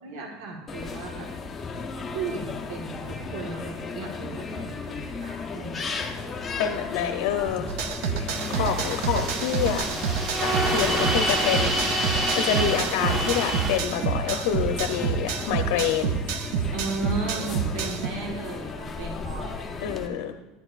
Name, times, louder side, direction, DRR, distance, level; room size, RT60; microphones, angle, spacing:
voice 1, 0.0-1.3 2.1-6.7 8.6-8.7 16.7-19.8, right 3 dB, 80° right, -1 dB, 1.5 m, -35 dB
sound 1, 0.7-20.1, left 4 dB, 15° left, 0.6 m, -35 dB
voice 2, 6.6-7.7 8.2-9.8 10.4-11.9 12.4-16.2 19.8-20.4, left 9 dB, 65° left, 6 dB, 0.6 m, -27 dB
sound 2, 7.7-18.1, right 7 dB, 55° right, 0.5 m, -29 dB
sound 3, 8.3-13.8, right 1 dB, 25° right, 1.2 m, -27 dB
11.0 x 10.5 x 2.4 m, 1.1 s
cardioid pair, 175°, 0 cm